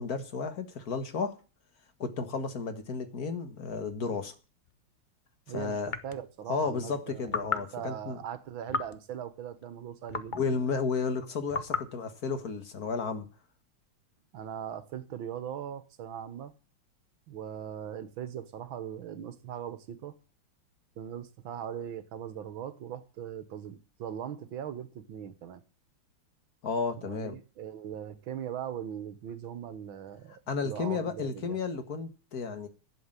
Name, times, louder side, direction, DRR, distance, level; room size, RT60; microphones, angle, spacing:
voice 1, 0.0-1.4 2.0-4.3 5.5-5.9 6.5-8.2 10.4-13.3 26.6-27.4 30.5-32.7, left 5 dB, 45° left, 2.1 m, -33 dB
sound 1, 4.6-4.7 5.9-6.3 7.3-7.7 8.7-9.0 10.1-10.5 11.5-11.9, left 5 dB, 65° left, 0.4 m, -34 dB
voice 2, 5.5-10.7 14.3-16.5 17.3-20.2 21.0-25.6 27.0-31.6, right 9 dB, 70° right, 2.0 m, -40 dB
11.5 x 7.9 x 9.0 m
omnidirectional pair, 2.3 m